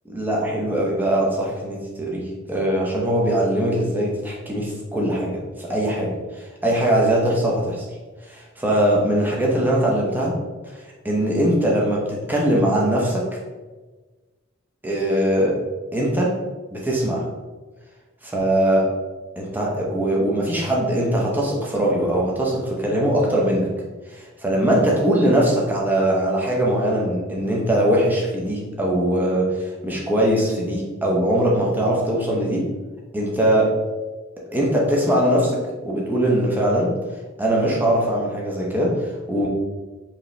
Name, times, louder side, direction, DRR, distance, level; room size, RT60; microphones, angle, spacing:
voice 1, 0.1-7.8 8.2-10.3 10.7-10.8 11.0-13.3 14.8-15.6 15.9-16.4 16.7-17.3 18.2-18.9 19.4-23.7 24.1-32.7 33.1-33.7 34.5-36.9 37.4-39.5, right 1 dB, 10° right, -3 dB, 0.8 m, -21 dB
4.7 x 3.0 x 3.2 m, 1.3 s
head